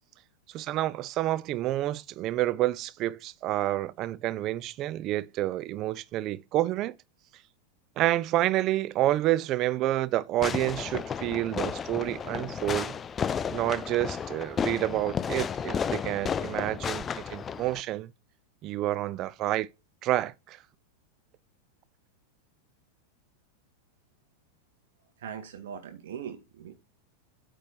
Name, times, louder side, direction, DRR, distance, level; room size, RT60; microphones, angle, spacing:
voice 1, 0.5-6.9 8.0-12.9 13.5-18.1 18.6-19.7 20.0-20.6, right 15 dB, 35° right, 0.5 m, -29 dB
Fireworks, 10.4-17.8, left 7 dB, 20° left, 0.4 m, -33 dB
voice 2, 25.2-26.7, right 8 dB, 60° right, 1.8 m, -40 dB
8.6 x 4.5 x 4.6 m
figure-of-eight pair, 90°, 0 cm